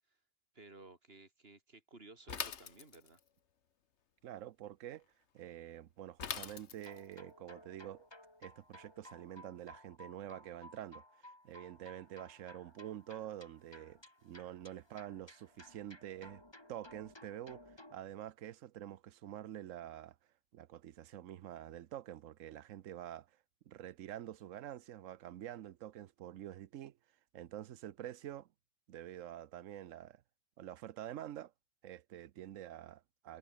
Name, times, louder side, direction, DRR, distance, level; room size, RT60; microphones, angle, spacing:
voice 1, 0.5-3.2, right 3 dB, 50° right, 3.1 m, -56 dB
Bicycle / Mechanisms, 2.3-3.3 6.2-7.1, left 7 dB, 65° left, 1.4 m, -42 dB
voice 2, 4.2-5.0 5.3-8.1 8.4-16.4 16.7-20.2 20.5-23.3 23.7-27.0 27.3-28.5 28.9-30.2 30.6-31.5 31.8-33.4, right 12 dB, 85° right, 1.1 m, -47 dB
sound 1, 6.8-18.0, left 1 dB, 20° left, 3.0 m, -57 dB
omnidirectional pair, 1.3 m